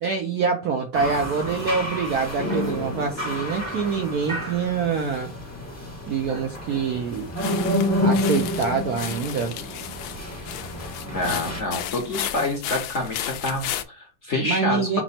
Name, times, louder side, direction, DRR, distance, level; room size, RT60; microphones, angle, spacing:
voice 1, 0.0-5.3 6.1-7.3 8.0-9.6 14.4-15.0, right 5 dB, 70° right, 4 dB, 0.9 m, -25 dB
sound 1, 0.9-11.6, left 1 dB, 15° left, 0.6 m, -29 dB
sound 2, 2.5-5.5 5.8-7.3, right 1 dB, 45° right, 0.4 m, -39 dB
sound 3, 7.1-13.8, left 11 dB, 80° left, 1.4 m, -34 dB
voice 2, 11.0-15.0, left 2 dB, 50° left, 1 dB, 0.9 m, -27 dB
5.9 x 2.1 x 4.1 m, 0.30 s
omnidirectional pair, 2.2 m